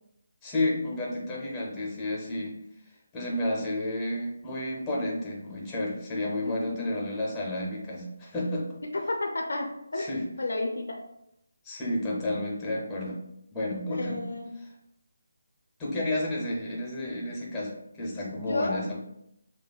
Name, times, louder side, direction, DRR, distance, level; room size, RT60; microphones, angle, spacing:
voice 1, 0.4-2.5 3.1-8.7 10.0-10.2 11.6-13.2 13.5-14.2 15.8-18.9, left 1 dB, 10° left, -3 dB, 0.6 m, -31 dB
voice 2, 6.4-6.8 8.9-10.1 10.4-11.0 13.9-14.5 18.5-18.8, left 2 dB, 85° left, 1 dB, 0.5 m, -31 dB
5.1 x 2.2 x 2.2 m, 0.79 s
hypercardioid pair, 170°, 0 cm